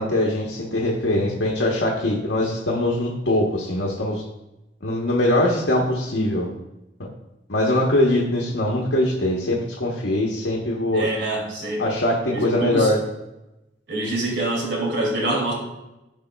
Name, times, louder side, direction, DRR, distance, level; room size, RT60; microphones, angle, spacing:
voice 1, 0.0-4.2 4.8-6.5 7.5-11.1 11.8-13.0, left 1 dB, 80° left, -3 dB, 1.0 m, -22 dB
voice 2, 10.9-11.9 12.3-12.9 13.9-15.5, right 2 dB, 85° right, -1 dB, 2.4 m, -25 dB
12.5 x 5.2 x 2.3 m, 0.95 s
head